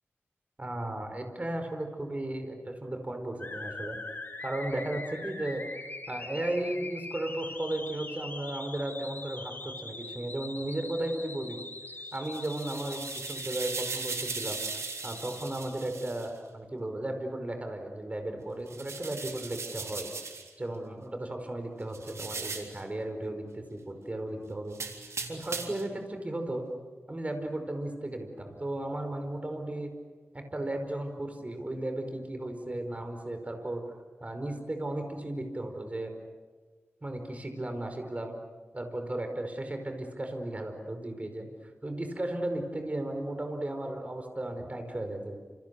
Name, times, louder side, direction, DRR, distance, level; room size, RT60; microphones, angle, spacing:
voice 1, 0.6-4.0 4.4-5.6 6.1-11.6 12.1-14.6 15.0-20.1 20.6-24.8 25.3-26.6 27.1-29.9 30.3-33.8 34.2-36.1 37.0-38.4 38.7-45.4, right 1 dB, 30° right, 5 dB, 5.0 m, -35 dB
sound 1, 3.4-15.7, left 2 dB, 40° left, 5.9 m, -42 dB
sound 2, 12.2-16.3 18.7-20.5 21.9-22.8 24.7-25.9, right 4 dB, 90° right, 3.6 m, -38 dB
29.5 x 28.5 x 7.0 m, 1.4 s
wide cardioid pair, 90°, 5 cm